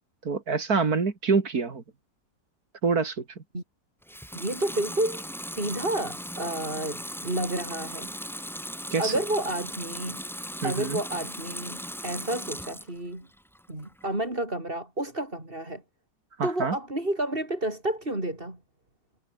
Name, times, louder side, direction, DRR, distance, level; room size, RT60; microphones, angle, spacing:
voice 1, 0.2-1.8 2.8-3.2 8.9-9.1 10.6-11.0 16.4-16.8, right 4 dB, 50° right, 2.8 m, -26 dB
Water tap faucet / Sink (filling or washing) / Liquid, 4.0-13.0 13.4-14.1, equal, ahead, 6.9 m, -38 dB
voice 2, 4.3-8.1 9.0-10.2 10.6-13.3 13.7-15.8 16.4-18.6, right 1 dB, 30° right, 6.6 m, -30 dB
omnidirectional pair, 2.0 m